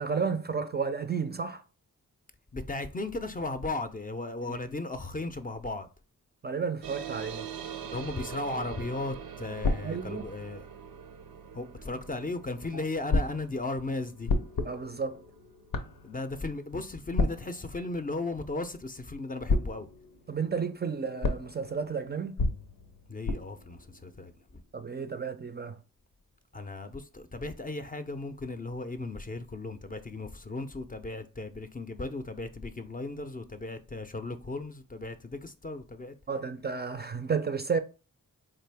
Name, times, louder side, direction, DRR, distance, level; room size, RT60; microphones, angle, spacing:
voice 1, 0.0-1.6 4.5-4.6 6.4-7.5 9.8-10.3 12.7-12.8 14.6-15.2 20.3-22.4 24.7-25.8 36.3-37.8, right 5 dB, 30° right, 0.4 m, -32 dB
voice 2, 2.5-5.9 7.8-10.7 11.5-14.3 16.0-19.9 23.1-24.3 26.5-36.1, left 2 dB, 25° left, 0.5 m, -36 dB
sound 1, 6.8-17.7, right 8 dB, 85° right, 0.6 m, -44 dB
sound 2, 9.6-11.5 13.1-19.1 19.5-24.9, left 3 dB, 80° left, 0.7 m, -34 dB
3.7 x 2.5 x 3.4 m
cardioid pair, 45°, 34 cm